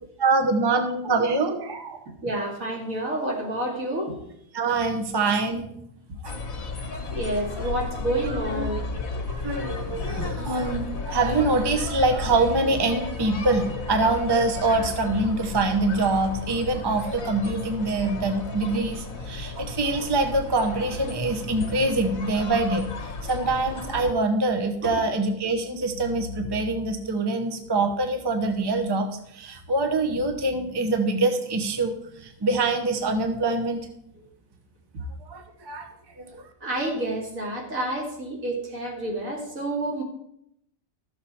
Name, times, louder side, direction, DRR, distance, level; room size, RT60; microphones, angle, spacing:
voice 1, 0.2-2.0 4.5-5.7 6.2-6.3 8.5-8.6 9.3-22.9 23.2-29.1 29.3-33.8 35.3-35.9 36.2-36.4, right 3 dB, 20° right, 5 dB, 0.8 m, -24 dB
voice 2, 2.2-4.1 7.1-8.8 24.8-25.0 34.2-34.3 36.6-40.0, right 1 dB, 75° right, -1 dB, 2.7 m, -29 dB
sound 1, 6.2-24.1, left 4 dB, 80° left, 1.6 m, -33 dB
13.5 x 6.7 x 4.3 m, 0.78 s
omnidirectional pair, 1.4 m